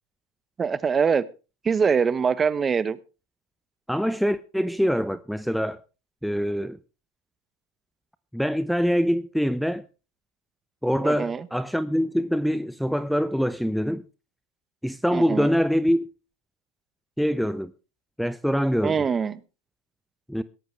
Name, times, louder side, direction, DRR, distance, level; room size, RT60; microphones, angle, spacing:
voice 1, 0.6-1.2 1.6-3.0 11.0-11.4 15.1-15.5 18.8-19.4, right 6 dB, 25° right, 1.0 m, -23 dB
voice 2, 3.9-5.8 6.2-6.8 8.3-9.8 10.8-14.0 14.8-16.1 17.2-17.7 18.2-19.0 20.3-20.4, equal, ahead, 0.6 m, -24 dB
17.5 x 13.0 x 3.3 m
hypercardioid pair, 100°, 0 cm